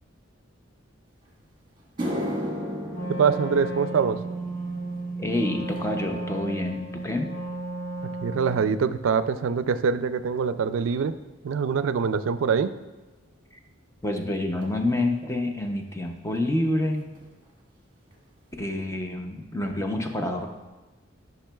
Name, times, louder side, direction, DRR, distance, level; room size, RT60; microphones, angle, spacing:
sound 1, 1.3-1.4 1.8-10.3 10.6-11.0 11.8-11.9 14.6-14.7 16.4-16.5 16.6-16.9 17.1-17.7 18.1-18.2 18.7-18.8, equal, 25° right, 1.3 m, -37 dB
Wind instrument woodwind instrument, 2.9-8.8, right 2 dB, 50° left, 1.8 m, -34 dB
voice 1, 3.1-4.2 8.2-11.1 11.4-12.7, right 6 dB, 85° right, 13 dB, 0.4 m, -24 dB
voice 2, 5.2-7.3 14.0-17.1 18.6-20.5, left 1 dB, 15° left, 4 dB, 0.6 m, -27 dB
11.5 x 5.9 x 2.3 m, 1.2 s
head